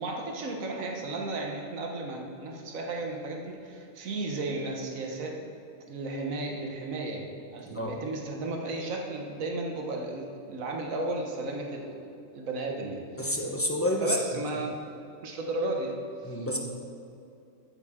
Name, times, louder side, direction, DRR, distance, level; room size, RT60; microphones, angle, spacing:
voice 1, 0.0-5.3 5.9-13.4 14.0-14.8 15.2-16.5, right 2 dB, 80° right, 1 dB, 1.5 m, -34 dB
voice 2, 13.2-14.2 16.2-16.6, equal, 10° left, 0 dB, 1.0 m, -29 dB
14.0 x 9.0 x 3.7 m, 2.7 s
omnidirectional pair, 1.4 m